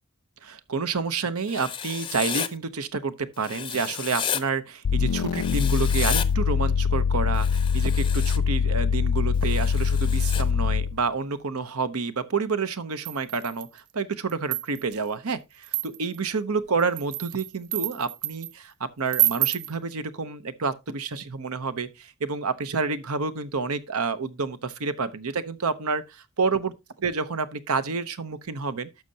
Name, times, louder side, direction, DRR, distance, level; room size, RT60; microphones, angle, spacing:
voice 1, 0.4-26.7 27.0-28.9, right 4 dB, 80° right, 0.9 m, -29 dB
Writing, 1.5-2.5 3.4-4.4 5.4-6.3 7.3-8.4 9.4-10.4, left 8 dB, 20° left, 0.6 m, -32 dB
sound 1, 4.8-11.0, left 6 dB, 85° left, 0.4 m, -23 dB
sound 2, 13.1-13.8 14.3-15.0 15.6-16.2 16.8-18.5 19.1-19.7, right 17 dB, 50° right, 0.4 m, -28 dB
12.0 x 6.5 x 2.8 m
head